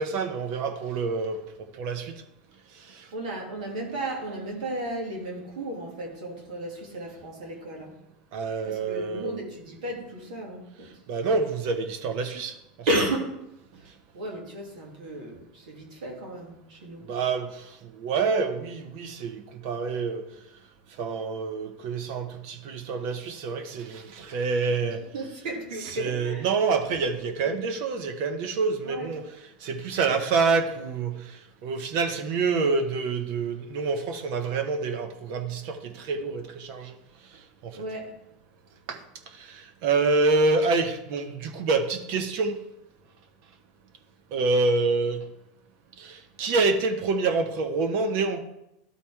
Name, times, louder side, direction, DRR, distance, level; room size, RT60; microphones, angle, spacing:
voice 1, 0.0-1.4 1.8-2.1 2.9-3.1 8.3-9.5 11.1-12.5 17.0-20.2 21.0-25.0 25.8-36.9 37.6-37.8 38.9-39.0 39.3-42.6 44.3-45.2 46.0-48.4, right 4 dB, 60° right, 7 dB, 1.0 m, -27 dB
voice 2, 3.1-7.9 8.7-10.9 12.9-13.4 14.1-17.1 25.1-26.5 27.4-27.6 28.8-29.1 37.8-38.1, right 1 dB, 85° right, -1 dB, 2.4 m, -33 dB
12.0 x 4.2 x 3.5 m, 0.87 s
supercardioid pair, 115°, 4 cm